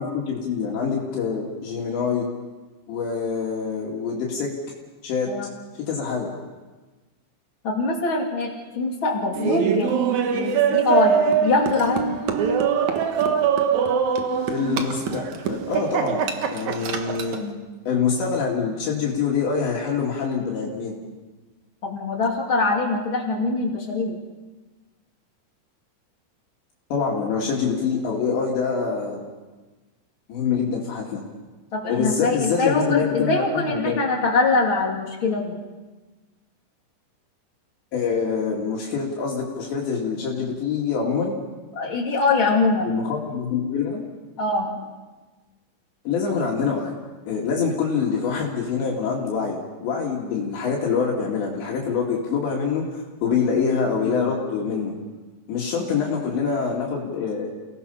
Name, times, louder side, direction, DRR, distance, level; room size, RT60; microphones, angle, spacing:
voice 1, 0.0-2.3 2.9-4.5 5.0-5.3 5.9-6.3 14.5-17.4 17.9-21.0 26.9-29.2 30.3-31.2 31.9-34.0 37.9-41.4 42.8-44.0 46.1-46.9 47.3-54.9 55.5-57.5, left 5 dB, 70° left, -2 dB, 4.3 m, -25 dB
voice 2, 7.6-8.5 8.7-10.0 10.3-12.2 17.4-17.6 21.8-24.2 31.7-35.5 41.7-42.9 44.4-44.7 55.9-56.0, left 3 dB, 35° left, -1 dB, 2.5 m, -23 dB
Laughter, 9.3-17.4, right 7 dB, 85° right, 1.6 m, -23 dB
29.5 x 18.0 x 5.6 m, 1.3 s
omnidirectional pair, 5.5 m